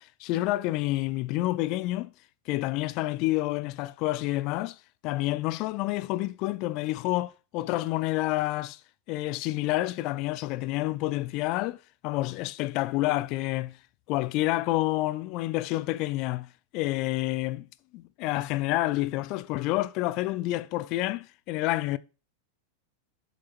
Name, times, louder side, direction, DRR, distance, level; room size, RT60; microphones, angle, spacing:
voice 1, 0.0-2.1 2.5-4.8 5.0-8.8 9.1-11.8 12.0-13.8 14.1-17.7 17.9-22.0, left 17 dB, 40° left, 0.5 m, -29 dB
7.5 x 7.2 x 4.4 m
figure-of-eight pair, 90°, 0 cm